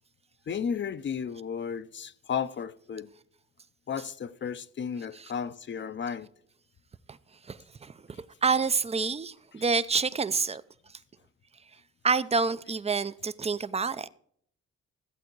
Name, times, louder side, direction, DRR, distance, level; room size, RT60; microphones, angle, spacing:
voice 1, 0.5-3.1 3.9-6.3, left 7 dB, 40° left, 0.7 m, -33 dB
voice 2, 7.5-7.9 8.4-10.6 12.0-14.1, right 5 dB, 20° right, 0.5 m, -27 dB
14.5 x 8.3 x 4.6 m
cardioid pair, 90°, 30 cm